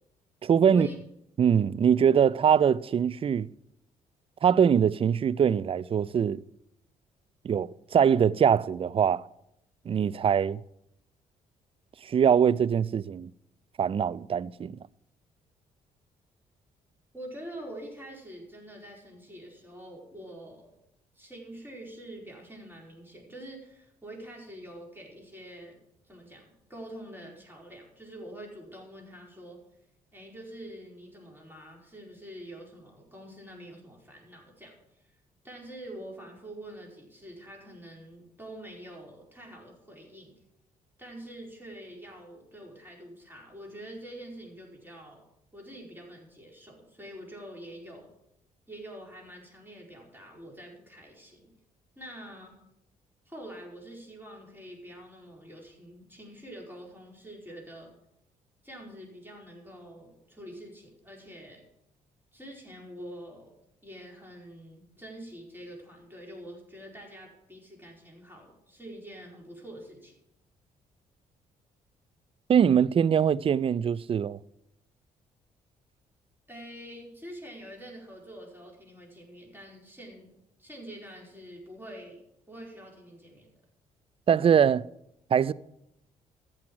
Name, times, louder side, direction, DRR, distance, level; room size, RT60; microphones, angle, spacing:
voice 1, 0.4-0.9 1.4-3.5 4.4-6.4 7.4-9.3 9.9-10.6 12.0-13.3 13.8-14.8 72.5-74.4 84.3-84.9 85.3-85.5, right 8 dB, 30° right, 0.4 m, -23 dB
voice 2, 17.1-20.7 21.1-25.8 26.1-29.6 30.1-34.8 35.4-40.3 41.0-45.2 45.5-48.1 48.7-51.5 51.9-52.6 53.3-57.9 58.6-61.6 62.3-63.5 63.8-70.1 76.5-80.3 80.6-82.2 82.5-83.5, right 1 dB, 10° right, 4.7 m, -46 dB
14.5 x 6.2 x 7.6 m
figure-of-eight pair, 45°, 18 cm